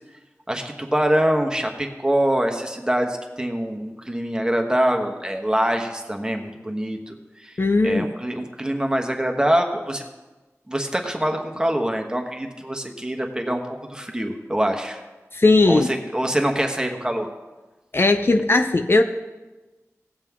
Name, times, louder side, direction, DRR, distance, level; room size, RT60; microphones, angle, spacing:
voice 1, 0.5-7.6 7.8-10.0 10.7-15.0 15.6-17.3, right 1 dB, 15° right, 3 dB, 1.3 m, -24 dB
voice 2, 7.6-8.1 15.3-15.9 17.9-19.0, left 2 dB, 45° left, 7 dB, 0.5 m, -17 dB
17.5 x 7.7 x 3.7 m, 1.2 s
wide cardioid pair, 75°, 5 cm